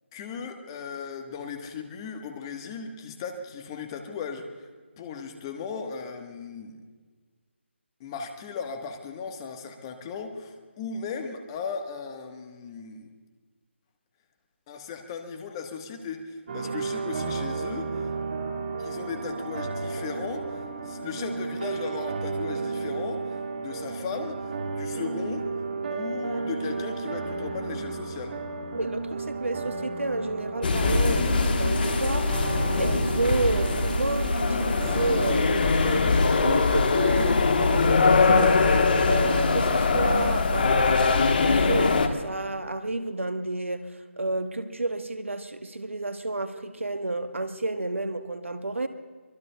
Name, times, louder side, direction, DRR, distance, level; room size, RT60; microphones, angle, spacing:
voice 1, 0.1-4.7 5.0-6.8 8.0-13.1 14.7-18.1 18.8-25.5 25.9-28.4, left 5 dB, 20° left, 5 dB, 1.3 m, -37 dB
sound 1, 16.5-35.4, right 4 dB, 45° right, 2.2 m, -33 dB
voice 2, 28.7-32.3 32.8-38.6 39.1-48.9, right 2 dB, 90° right, 9 dB, 1.3 m, -31 dB
sound 2, 30.6-42.1, left 4 dB, 50° left, 1.2 m, -22 dB
24.0 x 21.5 x 2.3 m, 1.5 s
figure-of-eight pair, 155°, 7 cm